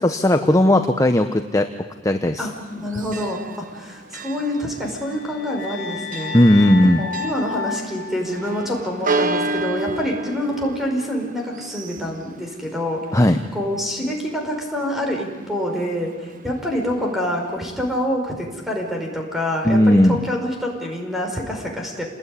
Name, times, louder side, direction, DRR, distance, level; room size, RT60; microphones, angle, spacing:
voice 1, 0.0-1.7 2.0-2.5 6.3-7.0 13.1-13.4 19.6-20.2, left 1 dB, 15° left, 7 dB, 1.0 m, -16 dB
voice 2, 2.4-6.3 7.0-13.0 13.5-22.0, equal, ahead, 1 dB, 5.4 m, -26 dB
Church bell, 2.5-17.6, right 2 dB, 45° right, 1.1 m, -33 dB
sound 1, 4.8-9.1, left 6 dB, 70° left, 3.8 m, -32 dB
28.5 x 20.0 x 9.9 m, 1.3 s
head